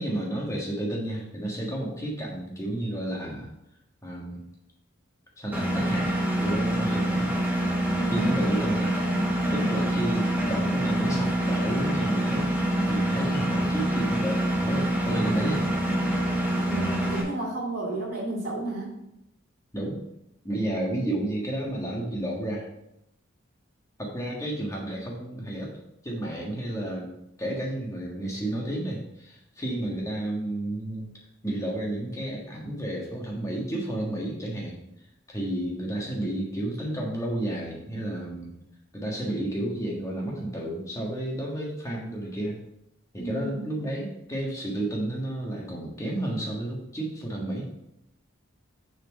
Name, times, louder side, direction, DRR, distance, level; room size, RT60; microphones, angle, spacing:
voice 1, 0.0-3.5 4.0-4.4 5.4-7.3 8.1-9.1 9.5-12.5 12.9-15.7 19.7-20.0 20.4-22.7 24.0-25.7 26.0-27.1 27.4-31.1 31.4-34.8 35.3-38.6 38.9-42.6 43.1-47.7, right 1 dB, 15° left, -2 dB, 1.5 m, -31 dB
Engine, 5.5-17.2, right 1 dB, 10° right, 1.1 m, -26 dB
voice 2, 7.9-8.3 9.4-9.7 16.6-19.0 43.2-43.7, right 2 dB, 45° right, -5 dB, 2.6 m, -32 dB
6.6 x 4.4 x 5.2 m, 0.82 s
head